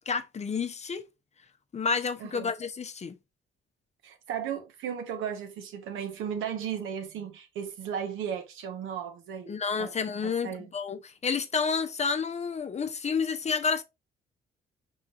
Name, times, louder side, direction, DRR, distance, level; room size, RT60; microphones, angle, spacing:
voice 1, 0.1-1.0 1.7-3.1 9.5-13.8, left 5 dB, 35° left, 0.6 m, -30 dB
voice 2, 2.2-2.5 4.0-9.9 10.2-10.7, right 8 dB, 90° right, 1.1 m, -35 dB
5.4 x 3.8 x 2.4 m
cardioid pair, 90°, 20 cm